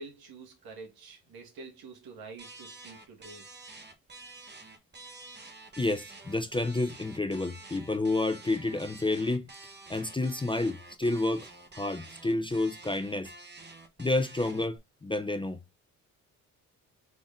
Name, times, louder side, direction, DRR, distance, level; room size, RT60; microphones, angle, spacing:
voice 1, 0.0-3.5, right 3 dB, 70° right, 1.6 m, -47 dB
sound 1, 2.4-14.8, right 2 dB, 25° right, 0.9 m, -49 dB
voice 2, 5.8-9.5 9.9-13.3 14.0-15.6, left 2 dB, 15° left, 0.5 m, -30 dB
3.9 x 3.4 x 2.5 m
supercardioid pair, 55°, 38 cm